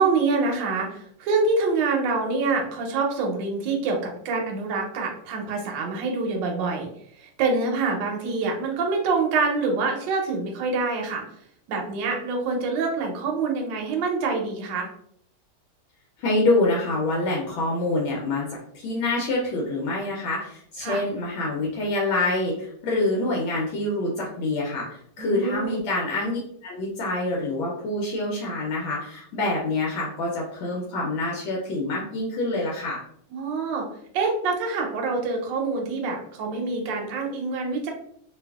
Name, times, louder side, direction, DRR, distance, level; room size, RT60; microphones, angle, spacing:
voice 1, 0.0-6.9 7.2-11.3 11.7-14.9 20.8-21.0 25.2-25.8 33.3-33.9 34.1-37.9, right 4 dB, 70° right, 1 dB, 1.2 m, -26 dB
voice 2, 16.2-18.5 18.7-33.0, left 2 dB, 80° left, -2 dB, 1.4 m, -26 dB
3.3 x 2.3 x 2.2 m, 0.66 s
omnidirectional pair, 2.3 m